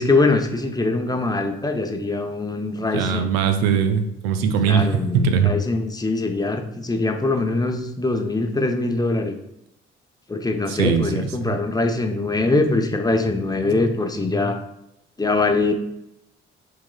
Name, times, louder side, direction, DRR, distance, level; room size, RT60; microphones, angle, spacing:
voice 1, 0.0-3.3 4.7-9.4 10.3-14.6 15.2-15.7, left 3 dB, 10° left, 5 dB, 0.7 m, -22 dB
voice 2, 2.9-5.5 10.7-11.6, right 6 dB, 70° right, 8 dB, 0.6 m, -21 dB
5.9 x 3.8 x 2.3 m, 0.82 s
figure-of-eight pair, 40°, 31 cm